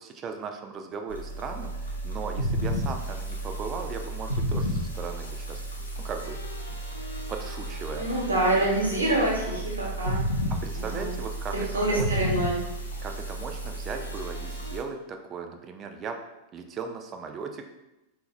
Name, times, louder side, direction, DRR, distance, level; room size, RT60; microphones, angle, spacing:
voice 1, 0.0-6.4 7.3-8.1 10.6-12.3 13.0-16.2 16.5-17.6, right 5 dB, 30° right, 5 dB, 0.3 m, -37 dB
sound 1, 1.1-14.8, right 1 dB, 80° left, 0.4 m, -32 dB
voice 2, 8.0-10.2 10.7-11.1 11.5-12.6, right 1 dB, 75° right, -3 dB, 0.8 m, -26 dB
3.7 x 2.0 x 2.9 m, 0.93 s
figure-of-eight pair, 90°, 0 cm